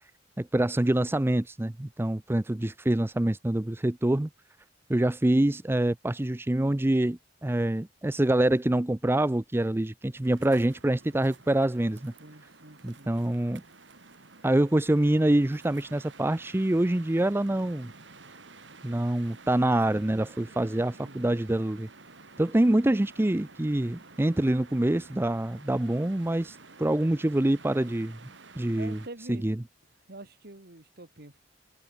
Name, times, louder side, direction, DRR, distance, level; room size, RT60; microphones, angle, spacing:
voice 1, 0.4-4.3 4.9-12.1 12.8-13.6 14.4-17.9 18.8-21.9 22.4-28.2 28.6-29.0 29.3-29.6, right 1 dB, 15° right, 0.5 m, -25 dB
sound 1, 10.2-29.1, right 3 dB, 85° right, 3.3 m, -51 dB
voice 2, 12.2-13.1 21.0-21.4 28.7-29.5 30.1-31.4, right 2 dB, 60° right, 2.5 m, -46 dB
head